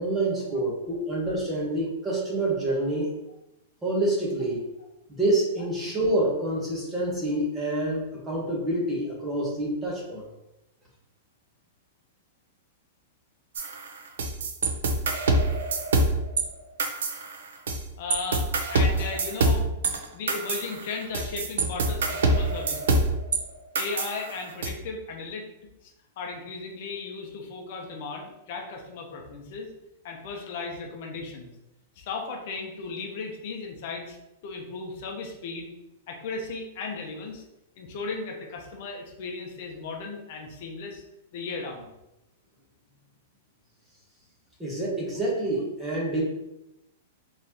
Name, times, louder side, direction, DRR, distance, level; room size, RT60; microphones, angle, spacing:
voice 1, 0.0-3.1 3.8-4.6 5.1-10.3 44.6-46.2, right 1 dB, 10° right, -4 dB, 0.9 m, -27 dB
sound 1, 13.6-16.4 16.8-17.8 18.1-23.4 23.8-24.7, right 2 dB, 85° right, 0.6 m, -25 dB
voice 2, 18.0-19.7 20.1-23.1 23.7-25.5 25.8-29.7 30.0-31.5 32.0-34.2 34.4-35.7 36.1-37.4 37.8-41.0 41.3-41.9, left 4 dB, 50° left, 1 dB, 0.7 m, -36 dB
3.9 x 3.0 x 2.8 m, 0.91 s
supercardioid pair, 165°, 0 cm